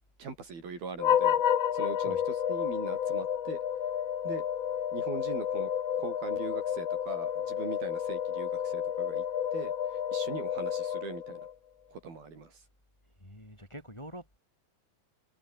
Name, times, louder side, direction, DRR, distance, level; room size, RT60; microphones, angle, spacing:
voice 1, 0.2-1.4 1.7-3.6 4.2-4.5 4.9-5.7 6.0-9.2 9.5-11.4 11.9-12.6, right 4 dB, 80° right, 8.1 m, -41 dB
sound 1, 1.0-11.5, left 9 dB, 70° left, 1.2 m, -30 dB
voice 2, 13.2-14.4, equal, 10° left, 3.8 m, -46 dB
omnidirectional pair, 4.2 m